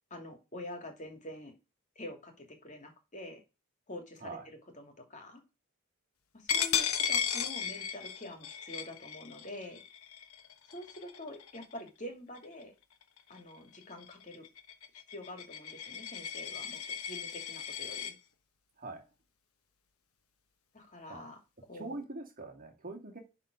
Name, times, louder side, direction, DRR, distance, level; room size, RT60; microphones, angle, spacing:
voice 1, 0.1-1.5 2.0-3.4 3.9-5.4 6.3-9.8 10.7-12.7 13.3-14.4 15.1-18.2 20.7-21.4 21.7-22.0, left 1 dB, 35° left, 2.4 m, -46 dB
Coin (dropping), 6.5-11.9 12.4-12.6 13.0-18.1, left 8 dB, 80° left, 1.1 m, -36 dB
voice 2, 21.7-23.2, right 2 dB, 40° right, 2.1 m, -43 dB
11.5 x 3.9 x 5.1 m
head